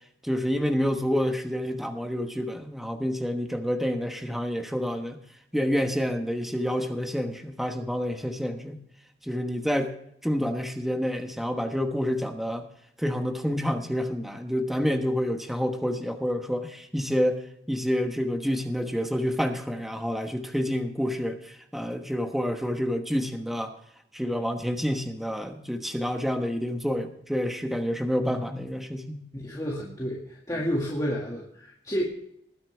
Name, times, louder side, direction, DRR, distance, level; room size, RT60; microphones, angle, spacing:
voice 1, 0.2-5.2 5.5-8.8 9.3-9.9 10.2-12.7 13.0-23.7 24.1-29.2, equal, ahead, 5 dB, 1.1 m, -28 dB
voice 2, 28.2-28.6 29.3-32.0, equal, 20° left, -4 dB, 2.0 m, -31 dB
20.0 x 9.8 x 3.4 m, 0.71 s
head